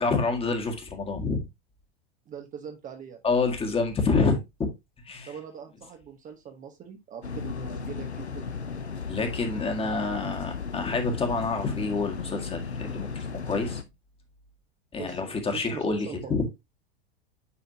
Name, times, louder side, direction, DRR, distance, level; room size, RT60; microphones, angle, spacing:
voice 1, 0.0-1.4 3.2-4.7 5.0-5.3 9.1-13.8 14.9-16.4, left 4 dB, 15° left, 1.8 m, -27 dB
voice 2, 2.3-3.2 5.3-8.6 15.0-15.2 15.5-16.4, right 7 dB, 25° right, 1.1 m, -41 dB
sound 1, 7.2-13.8, left 5 dB, 90° left, 0.7 m, -35 dB
9.6 x 4.2 x 2.8 m
figure-of-eight pair, 95°, 32 cm